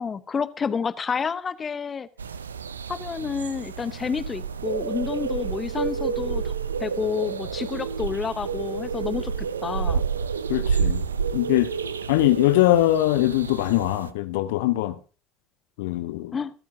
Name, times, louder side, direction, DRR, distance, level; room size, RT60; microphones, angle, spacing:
voice 1, 0.0-2.1 2.9-6.5 6.8-9.3 9.6-10.0 16.3-16.5, left 6 dB, 30° left, 0.8 m, -29 dB
sound 1, 2.2-14.1, right 6 dB, 80° right, 0.6 m, -29 dB
voice 2, 10.5-11.0 11.3-11.7 12.1-14.9 15.8-16.3, left 16 dB, 65° left, 0.7 m, -22 dB
25.0 x 8.6 x 2.7 m
figure-of-eight pair, 65°, 0 cm